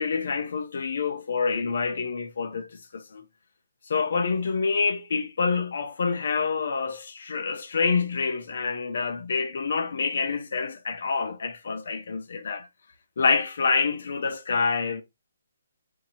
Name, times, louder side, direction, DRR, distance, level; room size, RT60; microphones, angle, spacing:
voice 1, 0.0-3.2 3.9-12.7 13.2-15.0, left 5 dB, 60° left, 0.7 m, -27 dB
2.7 x 2.7 x 4.2 m
hypercardioid pair, 170°, 0 cm